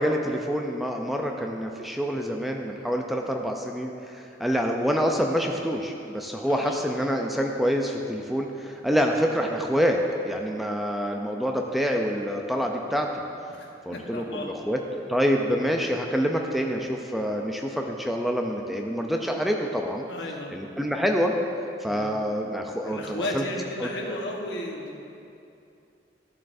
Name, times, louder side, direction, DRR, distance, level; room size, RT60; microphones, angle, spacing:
voice 1, 0.0-13.2 13.9-14.8 15.1-20.0 20.5-21.3 21.8-23.4 23.8-24.2, equal, ahead, 1 dB, 0.4 m, -27 dB
voice 2, 6.4-6.8 13.5-14.5 20.1-20.5 21.8-22.1 22.8-25.0, left 1 dB, 80° left, 0 dB, 1.1 m, -34 dB
13.0 x 7.5 x 2.6 m, 2.7 s
head